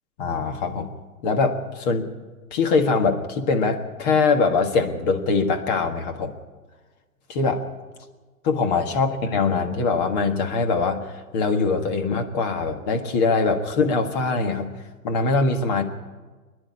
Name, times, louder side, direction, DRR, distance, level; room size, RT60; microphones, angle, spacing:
voice 1, 0.2-0.9 1.2-2.1 2.5-6.3 7.3-7.6 8.4-14.7 15.0-15.8, left 4 dB, 30° left, 5 dB, 1.6 m, -22 dB
25.0 x 10.5 x 10.0 m, 1.3 s
hypercardioid pair, 145°, 45 cm